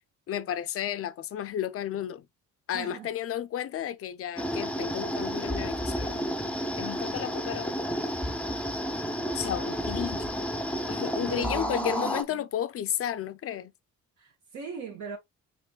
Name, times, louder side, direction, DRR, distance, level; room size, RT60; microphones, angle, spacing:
voice 1, 0.3-2.3 2.7-6.3 6.8-7.7 9.3-10.3 10.9-13.7, left 10 dB, 50° left, 0.5 m, -33 dB
voice 2, 2.7-3.1 11.3-12.4 14.2-15.2, right 7 dB, 70° right, 1.4 m, -39 dB
sound 1, 4.4-12.2, equal, 5° left, 0.5 m, -31 dB
4.8 x 3.0 x 2.2 m
cardioid pair, 90°, 30 cm